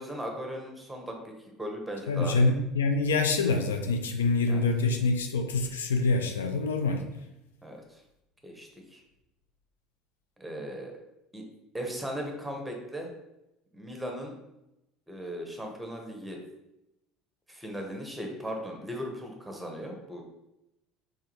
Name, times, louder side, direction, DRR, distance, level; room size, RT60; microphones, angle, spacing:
voice 1, 0.0-2.5 4.5-4.6 7.6-8.0 8.4-9.0 10.4-10.9 11.3-11.5 11.7-13.1 13.7-14.4 15.1-16.4 17.5-20.2, equal, 5° right, 1 dB, 0.9 m, -38 dB
voice 2, 2.1-7.1, left 3 dB, 75° left, 5 dB, 0.3 m, -26 dB
3.6 x 3.2 x 3.0 m, 0.89 s
figure-of-eight pair, 65°, 0 cm